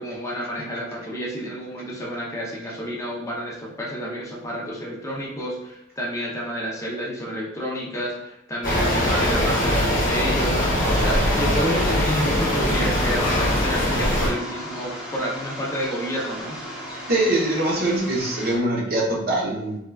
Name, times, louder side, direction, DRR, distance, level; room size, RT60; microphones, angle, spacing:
voice 1, 0.0-16.6, equal, 15° left, -4 dB, 0.5 m, -30 dB
sound 1, 8.6-14.3, left 1 dB, 45° left, 0.9 m, -22 dB
sound 2, 10.8-18.6, left 1 dB, 10° right, 1.0 m, -35 dB
voice 2, 17.1-19.8, right 1 dB, 50° right, -3 dB, 0.6 m, -23 dB
3.4 x 2.2 x 2.2 m, 0.85 s
head